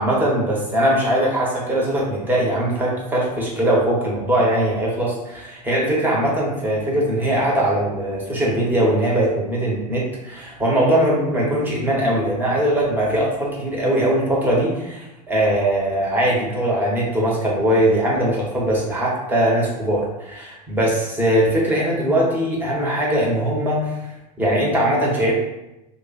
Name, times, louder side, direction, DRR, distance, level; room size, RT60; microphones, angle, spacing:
voice 1, 0.0-24.0 24.4-25.3, right 1 dB, 10° right, -4 dB, 1.3 m, -20 dB
3.0 x 2.4 x 4.1 m, 0.94 s
figure-of-eight pair, 85°, 20 cm